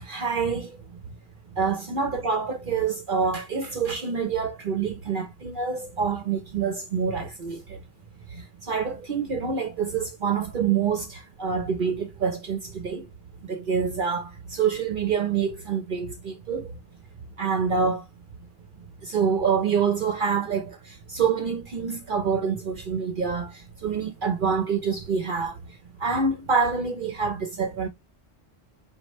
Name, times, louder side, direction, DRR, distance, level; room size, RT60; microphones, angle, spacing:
voice 1, 0.1-0.7 1.6-7.6 8.7-11.0 11.4-12.6 12.8-13.0 13.5-16.6 17.4-18.0 19.1-20.8 21.1-23.5 23.8-25.5 26.0-27.9, right 6 dB, 50° right, 0.8 m, -26 dB
5.1 x 3.1 x 3.0 m
omnidirectional pair, 1.2 m